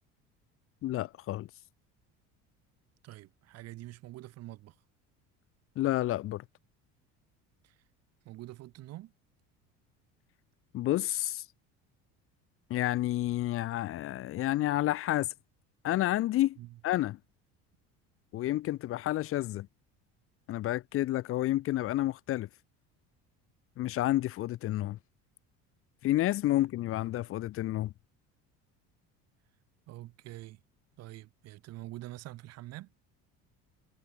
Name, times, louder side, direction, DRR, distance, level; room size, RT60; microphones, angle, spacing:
voice 1, 0.8-1.5 5.8-6.4 10.7-11.4 12.7-15.3 15.8-16.6 16.8-17.2 18.3-19.7 20.5-22.5 23.8-25.0 26.0-27.9, left 15 dB, 45° left, 1.1 m, -30 dB
voice 2, 3.0-4.8 7.6-7.8 8.2-9.1 16.6-16.8 29.9-30.6 31.0-32.9, right 16 dB, 55° right, 5.2 m, -46 dB
cardioid pair, 160°, 30 cm